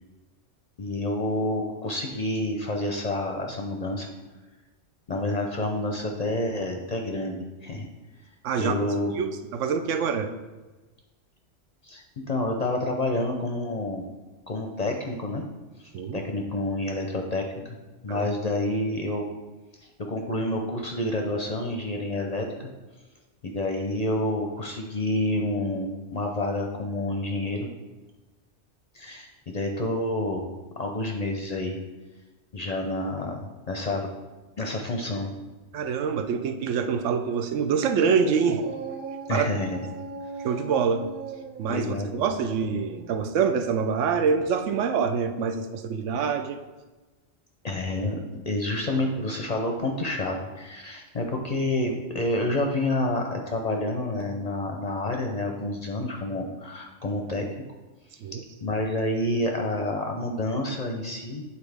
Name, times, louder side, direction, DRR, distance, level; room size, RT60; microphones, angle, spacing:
voice 1, 0.8-4.1 5.1-7.9 8.6-9.1 11.8-14.1 14.5-15.4 15.8-17.8 18.0-19.3 20.0-22.7 23.4-27.7 28.9-30.5 30.8-31.8 32.5-34.1 34.6-35.3 39.3-39.9 41.7-42.3 47.6-57.5 58.6-61.4, left 1 dB, 45° left, 2 dB, 0.5 m, -29 dB
voice 2, 8.4-8.8 9.1-10.3 15.9-16.2 18.1-18.3 35.7-38.6 39.3-39.5 40.4-41.1 41.6-46.6 58.2-58.4, right 6 dB, 85° right, 8 dB, 0.9 m, -25 dB
Dog, 38.1-44.7, right 4 dB, 60° right, 0.5 m, -40 dB
8.4 x 4.1 x 3.4 m, 1.2 s
omnidirectional pair, 1.2 m